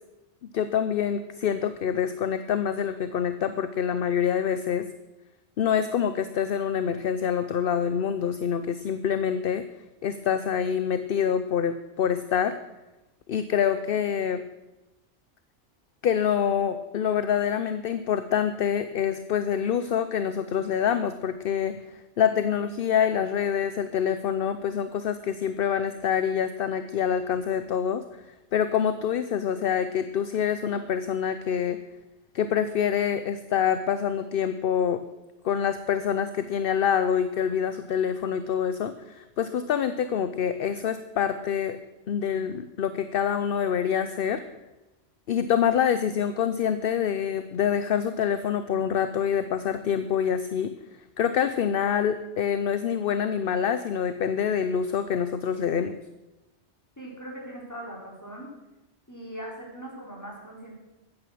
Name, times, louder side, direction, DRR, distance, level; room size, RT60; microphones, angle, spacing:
voice 1, 0.4-4.9 5.6-9.6 10.0-12.6 13.3-14.4 16.0-21.8 22.2-28.0 28.5-31.8 32.3-35.0 35.4-41.8 42.1-44.4 45.3-50.7 51.2-55.9, left 8 dB, 60° left, 11 dB, 0.8 m, -26 dB
voice 2, 57.0-58.5 59.1-60.7, right 1 dB, 15° left, -2 dB, 3.6 m, -40 dB
14.0 x 9.2 x 6.2 m, 0.99 s
omnidirectional pair, 1.2 m